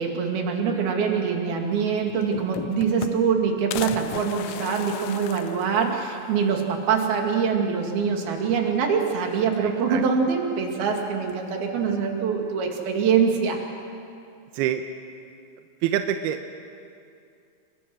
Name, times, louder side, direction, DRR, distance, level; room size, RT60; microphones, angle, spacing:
voice 1, 0.0-13.6, right 6 dB, 60° right, 2 dB, 4.0 m, -24 dB
sound 1, 1.7-1.8 2.1-3.4 3.7-6.3 6.7-6.8 7.1-7.2 8.3-8.8 9.2-9.9 11.0-11.5, left 12 dB, 90° left, 3.2 m, -37 dB
voice 2, 9.6-10.0 14.5-14.8 15.8-16.6, right 10 dB, 80° right, 7 dB, 2.5 m, -26 dB
30.0 x 23.0 x 6.2 m, 2.5 s
omnidirectional pair, 5.2 m